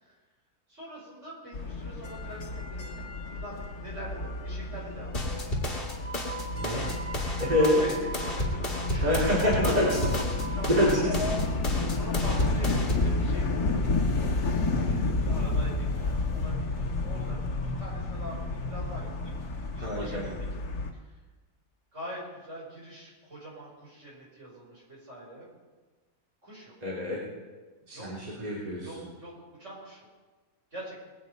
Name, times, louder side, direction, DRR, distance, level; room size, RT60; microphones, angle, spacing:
voice 1, 0.7-5.6 7.6-11.4 11.9-13.7 14.9-20.5 21.9-25.5 26.4-26.7 27.9-28.1 28.8-29.3 29.6-30.0 30.7-31.0, right 1 dB, 50° right, -5 dB, 5.6 m, -43 dB
sound 1, 1.5-20.9, left 2 dB, 90° left, 2.0 m, -31 dB
sound 2, 5.1-13.1, left 1 dB, 30° left, 2.3 m, -32 dB
voice 2, 6.5-6.9 7.4-7.9 9.0-9.9 10.6-11.2 11.5-11.6 19.8-20.3 26.8-27.2 27.9-29.1, left 1 dB, 25° right, -6 dB, 3.3 m, -26 dB
21.5 x 8.9 x 5.3 m, 1.3 s
omnidirectional pair, 1.6 m